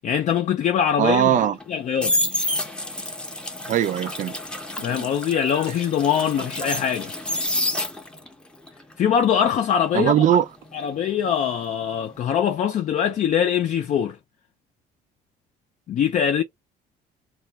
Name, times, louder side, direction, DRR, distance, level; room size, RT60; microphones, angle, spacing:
voice 1, 0.0-2.2 4.8-7.1 9.0-10.2 10.7-14.2 15.9-16.4, left 8 dB, 45° left, 0.4 m, -23 dB
voice 2, 1.0-1.6 3.7-4.3 9.9-10.4, right 10 dB, 50° right, 0.4 m, -19 dB
sound 1, 1.6-8.3 8.7-11.6 11.8-12.2, left 1 dB, 5° left, 0.6 m, -29 dB
Laughter, 4.8-7.5 10.3-11.1 11.3-11.9, right 7 dB, 65° right, 0.8 m, -42 dB
2.4 x 2.1 x 2.7 m
cardioid pair, 110°, 17 cm